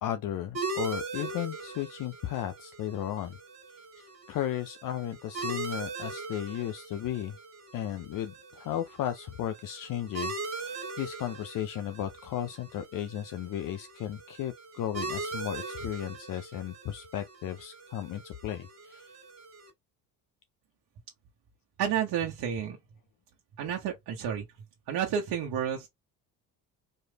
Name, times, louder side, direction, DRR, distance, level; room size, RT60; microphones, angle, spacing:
voice 1, 0.0-3.4 4.0-7.4 7.7-19.1, left 11 dB, 50° left, 0.6 m, -35 dB
sound 1, 0.5-19.7, right 3 dB, 40° right, 1.9 m, -40 dB
voice 2, 21.8-22.8 23.6-24.4 24.9-25.9, right 8 dB, 60° right, 1.2 m, -30 dB
4.4 x 3.1 x 2.4 m
hypercardioid pair, 65°, 42 cm